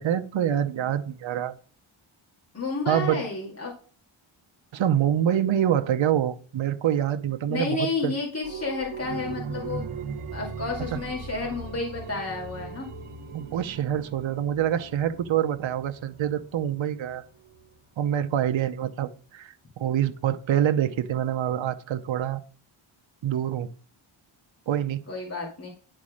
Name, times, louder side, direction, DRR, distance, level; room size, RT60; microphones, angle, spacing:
voice 1, 0.0-1.5 2.9-3.2 4.7-8.1 13.3-17.2 18.0-22.4 23.2-23.7 24.7-25.0, right 10 dB, 65° right, 9 dB, 0.8 m, -26 dB
voice 2, 2.5-3.7 7.5-9.9 10.3-12.9 25.1-25.7, left 3 dB, 30° left, -3 dB, 2.2 m, -31 dB
sound 1, 8.4-17.8 18.1-18.2, right 5 dB, 85° right, 1.2 m, -39 dB
10.5 x 4.2 x 5.0 m, 0.42 s
wide cardioid pair, 120°, 49 cm